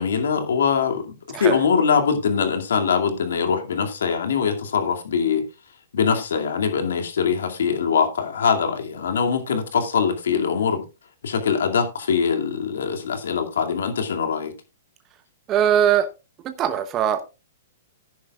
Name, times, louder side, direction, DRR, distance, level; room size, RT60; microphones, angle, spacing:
voice 1, 0.0-5.5 5.9-10.9 11.2-14.5, left 6 dB, 80° left, 2.3 m, -22 dB
voice 2, 15.5-16.1 16.4-17.2, right 9 dB, 30° right, 1.0 m, -20 dB
14.5 x 10.5 x 2.4 m
hypercardioid pair, 135°, 0 cm